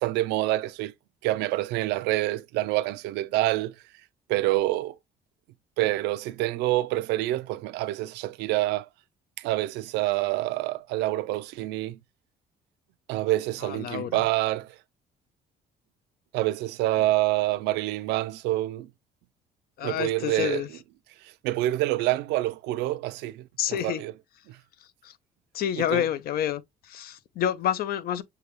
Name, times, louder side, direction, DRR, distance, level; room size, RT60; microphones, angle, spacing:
voice 1, 0.0-0.9 1.2-3.7 4.3-4.9 5.8-8.9 9.4-12.0 13.1-14.7 16.3-18.9 19.8-20.6 21.2-24.1 24.5-24.6 25.8-26.0, right 16 dB, 90° right, 0.4 m, -27 dB
voice 2, 13.6-14.2 19.8-20.7 23.6-24.0 25.0-25.1 25.5-26.6 26.9-28.2, left 10 dB, 65° left, 0.6 m, -28 dB
6.7 x 2.3 x 3.0 m
cardioid pair, 110°, 17 cm